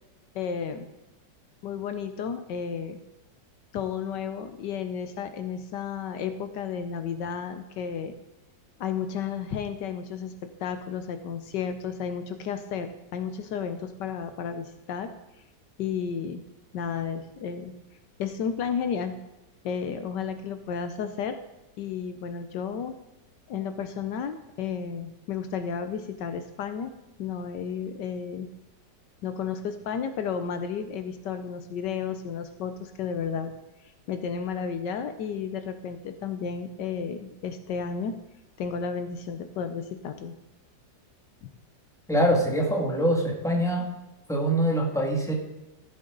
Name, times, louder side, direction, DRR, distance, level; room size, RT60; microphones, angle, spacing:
voice 1, 0.3-0.9 1.6-3.0 3.7-8.1 8.8-10.3 10.6-15.1 15.8-16.4 16.7-17.7 18.2-19.2 19.6-21.4 21.8-23.0 23.5-26.9 27.2-28.5 29.2-33.5 34.1-38.1 38.6-40.3 41.4-41.5, left 7 dB, 75° left, 9 dB, 1.4 m, -32 dB
voice 2, 42.1-43.9 44.3-45.3, right 1 dB, ahead, -1 dB, 2.1 m, -24 dB
14.5 x 7.8 x 3.9 m, 1.0 s
omnidirectional pair, 1.9 m